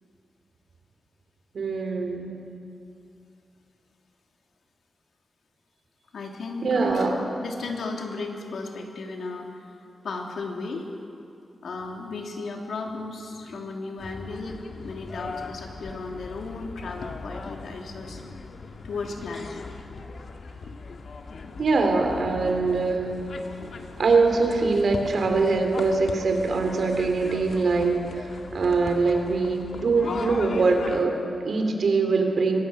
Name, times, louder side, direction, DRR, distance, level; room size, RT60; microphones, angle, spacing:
voice 1, 1.5-2.4 6.6-7.2 21.6-23.1 24.0-32.6, right 3 dB, 65° right, 4 dB, 3.5 m, -23 dB
voice 2, 6.1-9.7 10.0-10.9 11.6-14.5 14.8-18.2 18.8-19.6 23.8-23.9 29.2-29.5, left 3 dB, 80° left, 1 dB, 3.1 m, -35 dB
sound 1, 14.0-31.0, left 4 dB, 60° left, 1.9 m, -39 dB
24.5 x 17.5 x 9.2 m, 2.6 s
wide cardioid pair, 125°, 0 cm